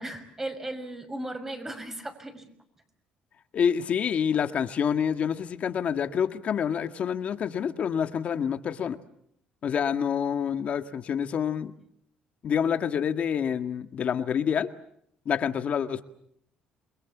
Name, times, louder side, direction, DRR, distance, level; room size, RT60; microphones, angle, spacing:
voice 1, 0.0-2.5, right 1 dB, 15° right, 7 dB, 6.0 m, -36 dB
voice 2, 3.5-9.0 9.6-11.7 12.4-14.7 15.3-16.0, left 7 dB, 50° left, 9 dB, 1.8 m, -27 dB
28.5 x 22.5 x 7.3 m, 0.71 s
cardioid pair, 105°, 3 cm